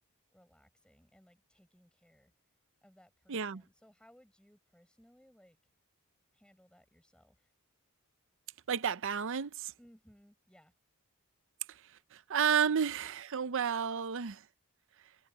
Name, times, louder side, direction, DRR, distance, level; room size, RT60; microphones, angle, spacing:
voice 1, 0.3-2.3 2.8-5.6 6.3-7.5 9.8-10.7, equal, 5° left, 6.1 m, -63 dB
voice 2, 3.3-3.6 8.7-9.7 11.7-14.5, right 7 dB, 60° right, 0.6 m, -32 dB
head